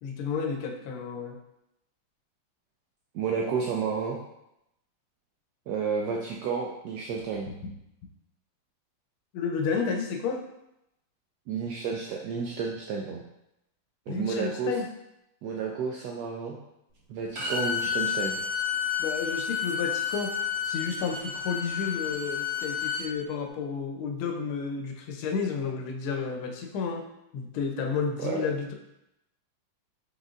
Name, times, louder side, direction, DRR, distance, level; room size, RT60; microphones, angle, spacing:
voice 1, 0.0-1.4 7.5-7.7 9.3-10.4 14.1-14.9 19.0-20.4 20.6-27.1 27.3-28.7, left 5 dB, 85° left, 3 dB, 1.5 m, -31 dB
voice 2, 3.1-4.2 5.7-7.5 11.5-13.2 14.1-14.7 15.4-16.6 17.1-18.4 28.2-28.4, right 5 dB, 80° right, -1 dB, 0.9 m, -31 dB
Bowed string instrument, 17.3-23.1, left 7 dB, 50° right, 1.7 m, -30 dB
5.1 x 4.1 x 2.4 m, 0.85 s
omnidirectional pair, 2.3 m